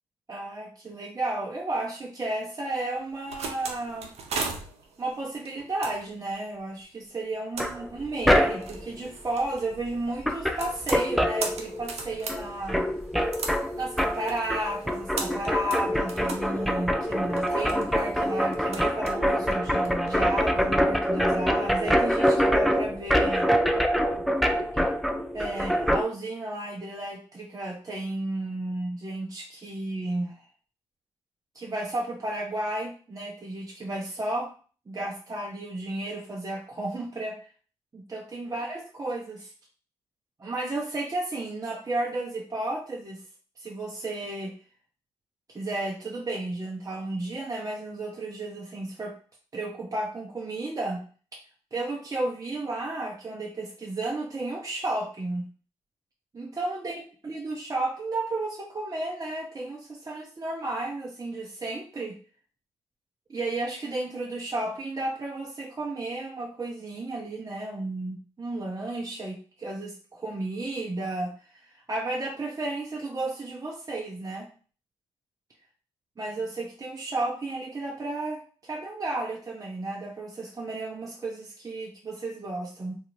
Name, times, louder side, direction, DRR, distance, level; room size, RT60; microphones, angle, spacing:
voice 1, 0.3-4.1 5.0-12.9 13.8-23.5 24.7-24.9 25.3-30.4 31.5-34.5 34.9-37.4 37.9-39.5 40.4-43.2 43.6-44.5 45.5-49.1 49.5-51.0 51.7-55.5 56.3-62.2 63.3-74.5 76.2-82.9, right 2 dB, 30° right, -2 dB, 0.7 m, -33 dB
sound 1, 3.0-20.2, right 4 dB, 70° right, 0.6 m, -39 dB
sound 2, 7.6-8.9 9.9-10.0 10.2-12.0 12.3-26.0, equal, ahead, 0.4 m, -25 dB
2.8 x 2.4 x 3.0 m, 0.40 s
supercardioid pair, 45°, 11 cm